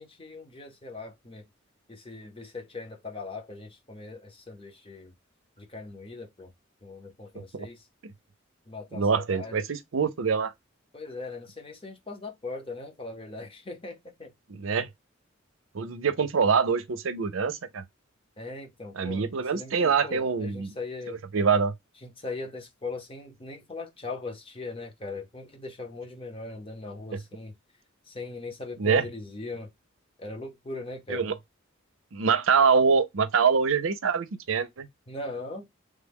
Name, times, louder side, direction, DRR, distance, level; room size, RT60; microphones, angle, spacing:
voice 1, 0.0-1.4 1.9-5.1 5.6-6.5 6.8-7.9 8.7-9.6 10.9-14.3 18.4-21.2 22.0-27.5 28.1-29.7 30.2-31.3 35.1-35.7, left 3 dB, 30° left, 0.9 m, -40 dB
voice 2, 8.9-10.5 14.5-14.9 15.7-17.8 19.0-20.7 21.1-21.7 28.8-29.1 31.1-31.3 32.1-34.9, right 5 dB, 80° right, 0.6 m, -25 dB
3.3 x 2.2 x 3.5 m
head